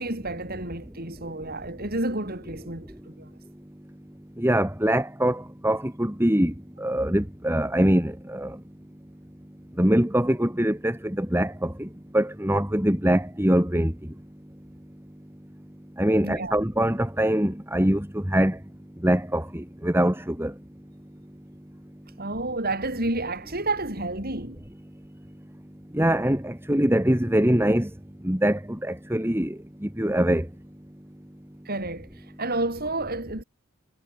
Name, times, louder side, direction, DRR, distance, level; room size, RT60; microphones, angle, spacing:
voice 1, 0.0-3.4 16.2-16.6 22.2-24.6 31.7-33.4, right 2 dB, 45° right, 7.1 m, -30 dB
voice 2, 4.4-8.6 9.8-11.9 12.1-13.9 16.0-18.6 19.0-20.5 25.9-27.9 28.2-29.6 29.8-30.5, right 1 dB, 10° right, 2.0 m, -23 dB
head